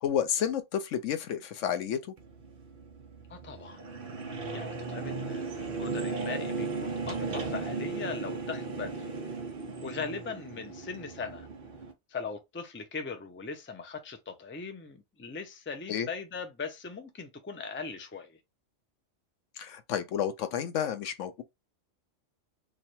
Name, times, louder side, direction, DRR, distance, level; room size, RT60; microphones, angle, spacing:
voice 1, 0.0-2.1 15.9-16.1 19.6-21.4, left 9 dB, 85° left, 1.0 m, -31 dB
sound 1, 2.2-11.9, right 4 dB, 50° right, 1.0 m, -36 dB
voice 2, 3.3-3.8 4.5-9.1 9.8-11.5 12.1-18.4, left 5 dB, 20° left, 0.4 m, -39 dB
3.2 x 2.4 x 4.2 m
omnidirectional pair, 1.2 m